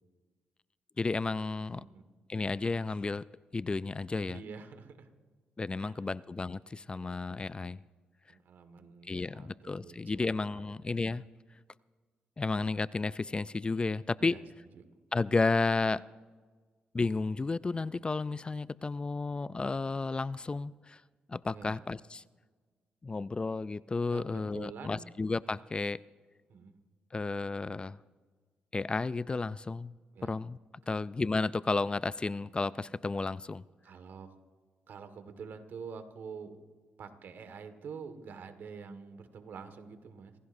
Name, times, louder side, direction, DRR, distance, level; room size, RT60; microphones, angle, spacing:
voice 1, 1.0-1.9 2.3-3.2 3.5-4.4 5.6-7.8 9.1-11.2 12.4-14.4 15.1-16.0 16.9-21.0 21.3-22.2 23.0-26.0 27.1-28.0 28.7-29.9 30.2-30.6 30.9-33.6, left 3 dB, 25° left, 18 dB, 0.3 m, -32 dB
voice 2, 1.7-2.0 4.3-5.1 5.8-6.1 6.9-7.1 8.3-10.6 14.2-14.4 14.7-14.8 21.5-21.8 24.1-25.1 26.5-26.8 30.1-30.3 30.9-31.0 33.8-34.3 34.9-36.6 37.0-40.3, right 5 dB, 70° right, 9 dB, 1.7 m, -47 dB
27.5 x 16.0 x 2.7 m, 1.5 s
cardioid pair, 65°, 4 cm